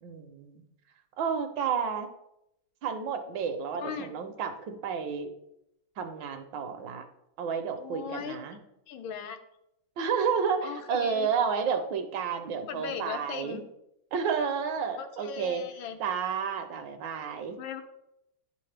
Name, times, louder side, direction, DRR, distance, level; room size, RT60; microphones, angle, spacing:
voice 1, 0.0-0.6 1.2-2.1 2.8-5.3 6.0-7.1 7.4-8.6 10.0-13.6 14.1-15.6 16.0-17.6, right 6 dB, 75° right, 7 dB, 1.3 m, -31 dB
voice 2, 3.8-4.1 7.8-8.4 8.9-9.4 10.6-11.3 12.7-13.6 15.0-16.0 17.6-17.8, left 7 dB, 90° left, 7 dB, 1.5 m, -38 dB
10.5 x 3.8 x 3.3 m, 0.83 s
omnidirectional pair, 2.2 m